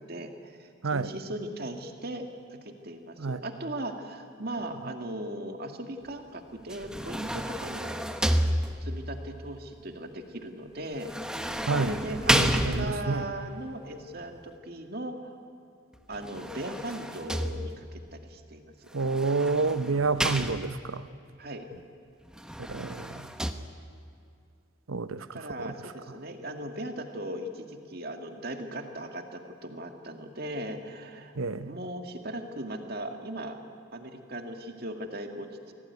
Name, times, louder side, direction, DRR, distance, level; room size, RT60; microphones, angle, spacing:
voice 1, 0.0-8.1 8.8-11.1 11.8-15.4 16.1-18.9 20.0-20.1 21.4-21.7 25.3-31.3 31.6-33.6 33.9-35.7, right 1 dB, 45° right, 5 dB, 2.1 m, -38 dB
sound 1, 6.7-9.1 11.0-13.3 16.1-18.0 19.0-21.0 22.3-23.5, equal, 5° right, 0.9 m, -30 dB
voice 2, 12.3-13.3 18.9-21.1 22.7-23.3 24.9-25.7 31.4-31.7, right 4 dB, 75° right, 14 dB, 0.8 m, -29 dB
25.5 x 17.5 x 9.5 m, 2.6 s
head